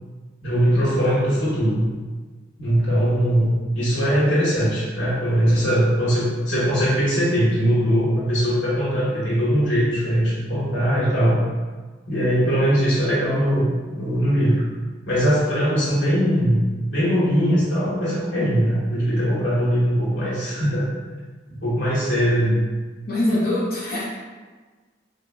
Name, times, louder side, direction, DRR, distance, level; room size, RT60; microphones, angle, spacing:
voice 1, 0.4-1.9 2.6-11.4 12.1-14.6 15.1-16.6 16.9-20.9 21.6-22.6, equal, 90° left, -8 dB, 1.4 m, -20 dB
voice 2, 23.1-24.1, left 1 dB, 50° left, -9 dB, 0.7 m, -23 dB
3.9 x 2.7 x 2.2 m, 1.4 s
head